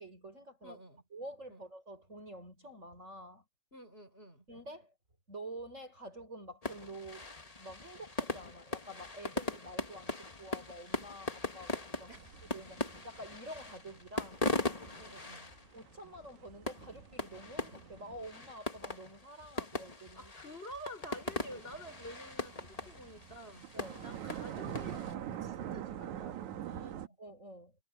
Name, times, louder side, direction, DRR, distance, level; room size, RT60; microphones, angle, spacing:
voice 1, 0.0-0.8 1.1-3.4 4.5-4.9 5.3-7.3 7.6-12.1 12.5-14.5 15.7-20.3 23.7-24.0 27.0-27.8, right 1 dB, 25° right, 5.4 m, -48 dB
voice 2, 0.6-1.0 1.5-1.7 3.7-4.5 12.1-12.4 15.0-15.5 20.1-23.7 24.0-27.2, equal, 20° left, 6.0 m, -50 dB
sound 1, 6.6-25.1, left 2 dB, 55° left, 0.4 m, -40 dB
sound 2, 12.1-18.5 21.3-27.1, right 10 dB, 80° right, 2.7 m, -45 dB
omnidirectional pair, 3.3 m